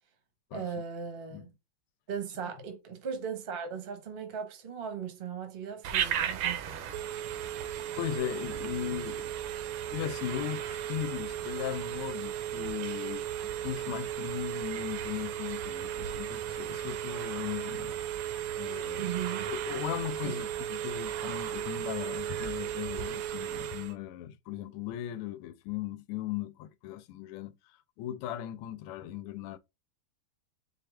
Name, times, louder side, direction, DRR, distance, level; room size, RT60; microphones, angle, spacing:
voice 1, 0.5-1.5 2.1-6.8 19.0-19.5 20.2-20.3, right 7 dB, 45° right, 0.8 m, -38 dB
Telephone, 5.8-23.9, right 11 dB, 85° right, 1.5 m, -35 dB
voice 2, 8.0-9.3 9.9-18.0 18.5-19.1 19.5-29.6, left 11 dB, 85° left, 1.5 m, -38 dB
4.6 x 2.5 x 3.2 m
omnidirectional pair, 2.4 m